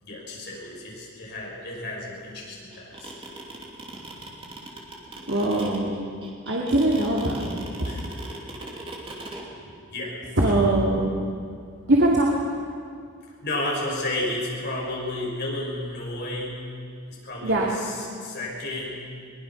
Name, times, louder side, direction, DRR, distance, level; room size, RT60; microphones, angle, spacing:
voice 1, 0.0-3.1 7.8-8.2 9.9-10.2 10.4-10.8 13.4-16.6 17.1-19.0, left 1 dB, 50° left, -3 dB, 5.9 m, -32 dB
sound 1, 2.7-9.4, right 2 dB, 25° right, 2.7 m, -39 dB
voice 2, 5.3-6.1 6.5-7.7 10.4-11.1 11.9-12.3 17.4-17.7, right 1 dB, 55° right, -3 dB, 2.4 m, -22 dB
22.0 x 20.5 x 6.0 m, 2.3 s
head